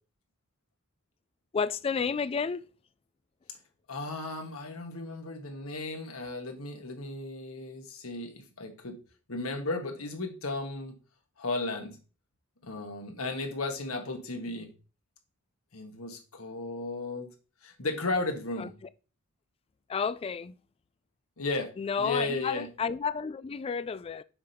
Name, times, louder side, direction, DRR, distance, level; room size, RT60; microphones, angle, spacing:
voice 1, 1.5-2.6 18.6-18.7 19.9-20.5 21.8-24.2, left 5 dB, 25° left, 0.3 m, -31 dB
voice 2, 3.9-9.0 9.3-10.9 11.4-12.0 12.6-14.7 15.7-17.3 17.6-18.7 21.4-21.7 22.0-22.7, left 2 dB, 85° left, 1.7 m, -35 dB
7.0 x 3.4 x 5.7 m
head